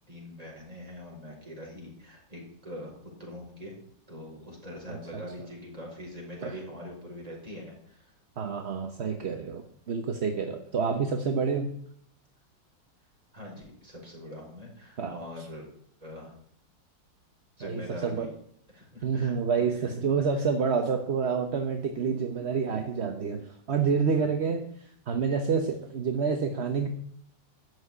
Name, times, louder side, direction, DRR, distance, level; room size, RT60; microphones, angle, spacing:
voice 1, 0.1-3.7 4.1-8.1 13.3-15.7 16.0-16.3 17.6-18.3 18.7-19.8 20.3-20.5, left 1 dB, 20° right, -2 dB, 5.4 m, -43 dB
voice 2, 4.9-5.2 6.4-6.5 8.4-11.7 15.0-15.2 17.6-18.3 19.0-24.6 25.1-26.9, right 5 dB, 45° right, 5 dB, 1.0 m, -28 dB
13.0 x 6.3 x 9.9 m, 0.66 s
omnidirectional pair, 2.0 m